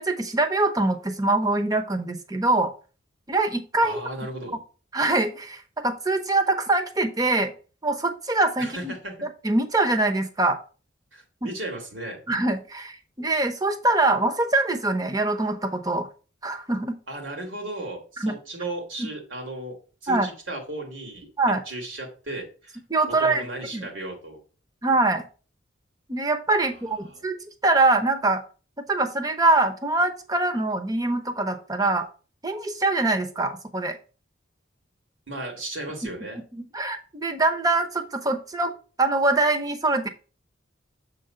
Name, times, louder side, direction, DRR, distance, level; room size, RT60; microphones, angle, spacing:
voice 1, 0.0-2.7 3.3-4.0 4.9-7.5 7.8-8.9 9.4-10.6 11.4-11.5 12.3-16.1 16.4-17.0 18.2-18.3 19.0-19.1 20.1-20.3 21.4-21.6 22.9-23.5 23.7-23.8 24.8-25.2 26.1-27.4 27.6-28.4 28.9-32.1 32.4-34.0 36.5-38.7 39.0-40.1, right 2 dB, 20° right, 7 dB, 0.8 m, -23 dB
voice 2, 3.8-4.6 8.6-9.1 11.1-12.2 17.1-19.8 20.0-22.8 23.2-24.4 27.0-27.3 35.3-36.4, right 1 dB, 80° right, 2 dB, 2.3 m, -35 dB
7.2 x 3.8 x 5.6 m, 0.36 s
head